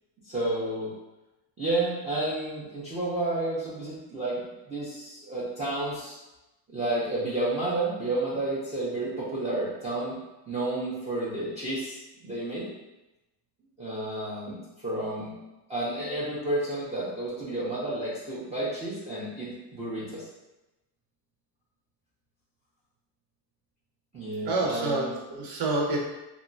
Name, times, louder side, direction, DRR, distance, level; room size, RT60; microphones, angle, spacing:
voice 1, 0.2-0.9 1.6-6.2 6.7-10.2 10.5-12.7 13.8-15.4 15.7-20.2 24.1-25.2, right 2 dB, 15° right, -8 dB, 0.4 m, -31 dB
voice 2, 24.5-26.0, right 2 dB, 50° right, -2 dB, 0.8 m, -28 dB
2.9 x 2.2 x 2.5 m, 1.0 s
cardioid pair, 135°, 47 cm